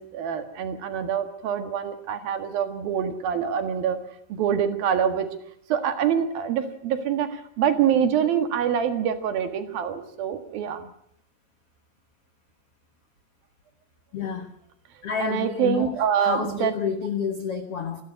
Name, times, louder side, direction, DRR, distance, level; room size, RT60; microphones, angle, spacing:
voice 1, 0.0-4.0 4.3-5.3 5.7-10.9 15.2-16.7, right 8 dB, 65° right, 8 dB, 3.3 m, -25 dB
voice 2, 14.1-14.6 15.0-18.0, left 7 dB, 90° left, 8 dB, 1.2 m, -29 dB
28.0 x 12.0 x 9.6 m, 0.74 s
omnidirectional pair, 4.8 m